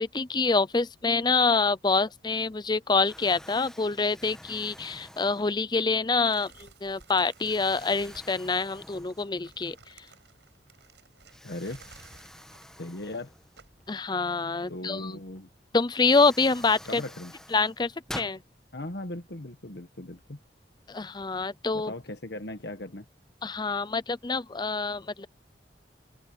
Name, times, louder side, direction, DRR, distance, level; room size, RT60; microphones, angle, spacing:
voice 1, 0.0-10.1 13.9-15.2 15.7-17.0 17.5-18.4 20.9-21.9 23.4-25.3, left 4 dB, 25° left, 0.6 m, -26 dB
Explosion, 2.3-2.7 3.0-5.9 6.5-6.6 7.3-9.6 10.0-10.1 11.3-13.9 15.4-15.5 15.9-18.4, equal, 5° left, 1.2 m, -47 dB
sound 1, 6.3-14.4, right 4 dB, 80° right, 6.2 m, -56 dB
voice 2, 11.4-11.8 12.8-13.3 14.7-15.5 16.9-17.3 18.7-20.4 21.7-23.0, left 1 dB, 65° left, 1.4 m, -38 dB
head